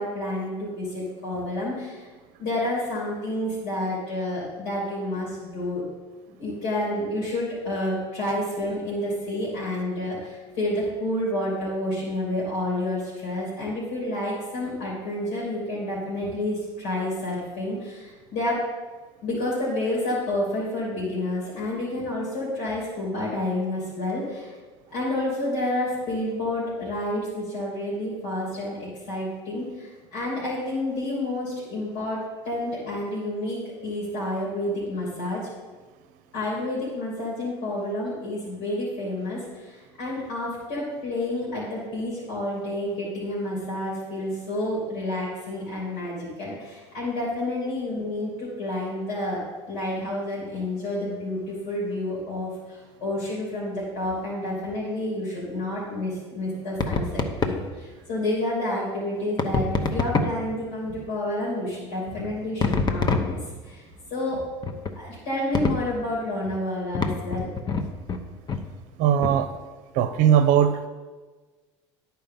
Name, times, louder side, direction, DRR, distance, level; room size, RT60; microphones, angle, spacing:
voice 1, 0.0-2.1 2.4-5.8 6.3-18.6 19.2-24.5 24.9-35.5 36.3-63.4 63.6-63.8 64.1-64.4 64.9-67.5, left 1 dB, 75° left, -5 dB, 3.0 m, -29 dB
sound 1, 56.8-57.7 59.4-60.5 62.6-63.7 64.6-65.0 65.5-65.9 66.9-68.2 68.5-68.7 69.2-69.4, left 4 dB, 30° left, 0.8 m, -26 dB
voice 2, 69.0-69.5 69.9-70.9, right 9 dB, 60° right, 11 dB, 0.7 m, -19 dB
10.0 x 4.6 x 5.3 m, 1.3 s
hypercardioid pair, 80°, 15 cm